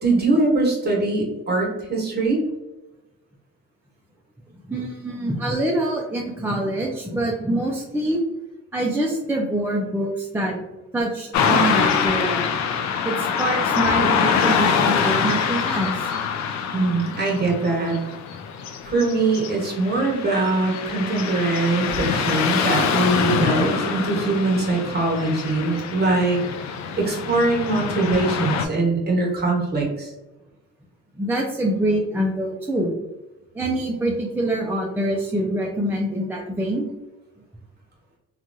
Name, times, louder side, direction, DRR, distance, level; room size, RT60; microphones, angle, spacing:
voice 1, 0.0-2.4 16.7-17.9 18.8-26.4 27.0-30.1, right 2 dB, 35° right, -2 dB, 1.2 m, -22 dB
voice 2, 4.7-8.2 8.7-10.6 10.9-12.4 13.0-16.1 31.2-32.9 33.5-36.9, right 1 dB, 5° right, -2 dB, 0.4 m, -25 dB
Car passing by / Traffic noise roadway noise, 11.3-28.6, left 6 dB, 65° left, 0.4 m, -24 dB
3.0 x 2.3 x 2.6 m, 1.0 s
cardioid pair, 90°, 30 cm